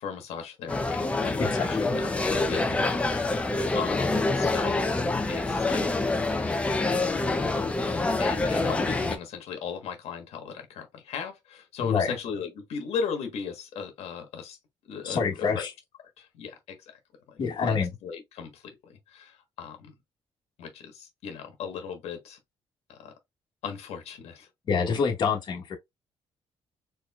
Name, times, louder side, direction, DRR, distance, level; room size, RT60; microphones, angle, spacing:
voice 1, 0.0-4.9 5.3-6.0 8.2-14.6 14.8-15.6 16.2-17.0 17.3-19.9 20.6-22.4 22.9-23.1 23.6-24.5, left 6 dB, 85° left, 1.3 m, -37 dB
sound 1, 0.7-9.2, left 2 dB, 10° left, 0.5 m, -26 dB
voice 2, 1.4-1.9 11.8-12.1 15.0-15.7 17.4-17.9 24.7-25.8, left 5 dB, 45° left, 1.2 m, -27 dB
4.4 x 3.0 x 2.4 m
cardioid pair, 175°, 10 cm